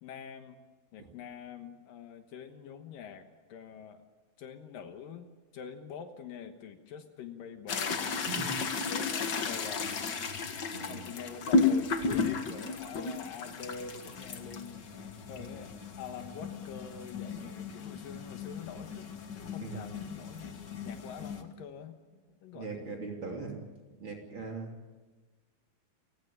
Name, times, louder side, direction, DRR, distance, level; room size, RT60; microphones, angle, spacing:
voice 1, 0.0-0.6 0.9-4.0 4.4-5.3 5.5-8.3 8.9-10.2 10.6-14.8 15.3-19.1 19.4-20.6 20.8-23.0, left 7 dB, 70° left, 7 dB, 2.9 m, -45 dB
sound 1, 7.7-21.4, left 4 dB, 55° left, 1.2 m, -34 dB
voice 2, 10.7-11.0 19.6-19.8 22.5-23.6 24.0-24.7, right 4 dB, 35° right, 1 dB, 3.3 m, -40 dB
29.0 x 16.0 x 8.7 m, 1.3 s
omnidirectional pair, 4.3 m